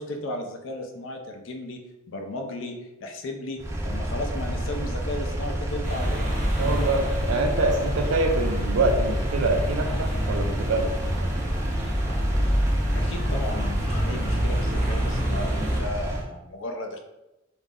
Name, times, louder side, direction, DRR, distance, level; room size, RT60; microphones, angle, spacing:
voice 1, 0.0-1.8 2.1-2.8 3.0-6.3 12.9-17.0, left 1 dB, 70° left, 4 dB, 0.4 m, -35 dB
Engine, 3.6-16.3, equal, 15° right, 0.3 m, -30 dB
sound 1, 5.8-15.8, equal, 40° right, 0.7 m, -27 dB
voice 2, 6.6-11.3, right 2 dB, 85° right, 4 dB, 0.4 m, -25 dB
2.4 x 2.0 x 3.5 m, 0.97 s
head